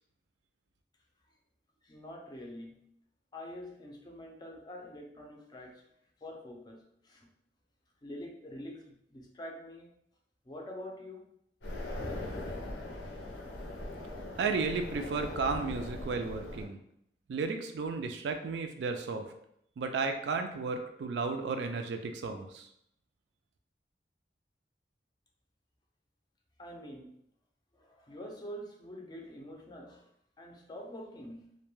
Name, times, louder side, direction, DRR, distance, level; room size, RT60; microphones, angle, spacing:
voice 1, 1.8-2.8 3.3-5.8 6.2-7.3 8.0-9.9 10.5-11.3 26.6-27.1 27.7-30.1 30.4-31.6, equal, 25° left, 0 dB, 0.4 m, -46 dB
sound 1, 11.6-16.6, left 1 dB, 90° left, 0.6 m, -40 dB
voice 2, 14.4-16.8 17.3-19.3 19.8-22.7, right 4 dB, 75° right, 6 dB, 0.3 m, -33 dB
2.2 x 2.1 x 3.0 m, 0.73 s
head